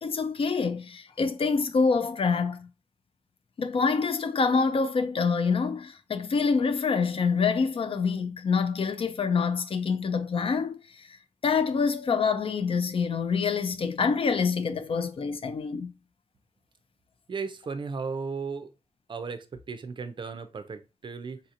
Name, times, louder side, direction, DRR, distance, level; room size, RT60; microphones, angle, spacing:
voice 1, 0.0-2.7 3.6-11.2 11.4-15.9, left 5 dB, 55° left, 0.4 m, -26 dB
voice 2, 17.3-18.7 19.1-21.4, right 5 dB, 45° right, 0.4 m, -35 dB
3.8 x 2.8 x 2.4 m
wide cardioid pair, 135°, 11 cm